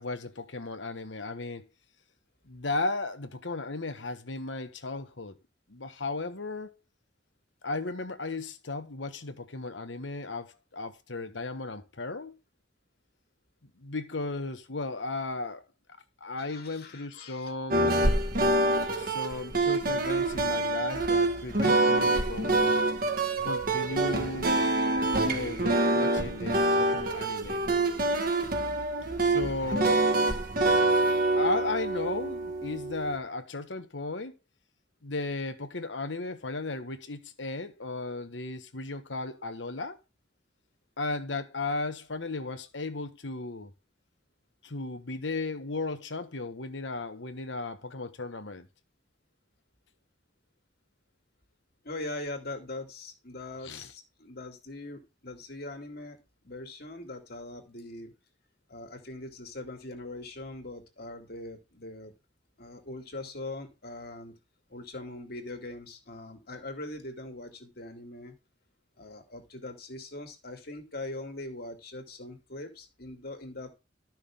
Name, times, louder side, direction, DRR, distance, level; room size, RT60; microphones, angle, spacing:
voice 1, 0.0-1.7 2.5-5.3 5.7-6.8 7.6-12.3 13.6-15.6 16.2-18.1 19.0-22.8 23.4-24.6 25.2-27.6 29.2-30.1 30.6-30.8 31.4-34.3 35.0-40.0 41.0-43.7 44.6-48.7 53.6-53.9, left 3 dB, 85° left, 1.3 m, -35 dB
voice 2, 16.4-17.5 51.8-56.2 56.4-58.1 58.7-62.1 62.6-64.3 64.7-68.3 69.0-73.7, left 2 dB, 60° left, 2.5 m, -41 dB
sound 1, 17.7-33.2, right 2 dB, 50° right, 1.8 m, -26 dB
12.5 x 6.1 x 3.6 m
head